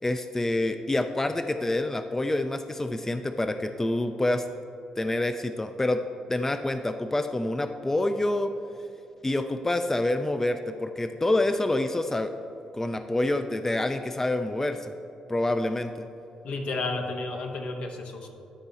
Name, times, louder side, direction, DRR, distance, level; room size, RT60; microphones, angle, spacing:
voice 1, 0.0-4.5 5.0-6.0 6.3-8.5 9.2-12.3 12.7-14.9 15.3-16.1, left 1 dB, 15° left, 8 dB, 0.4 m, -27 dB
voice 2, 16.4-18.4, left 3 dB, 65° left, 3 dB, 1.0 m, -32 dB
12.0 x 4.6 x 3.9 m, 2.8 s
supercardioid pair, 50°, 2 cm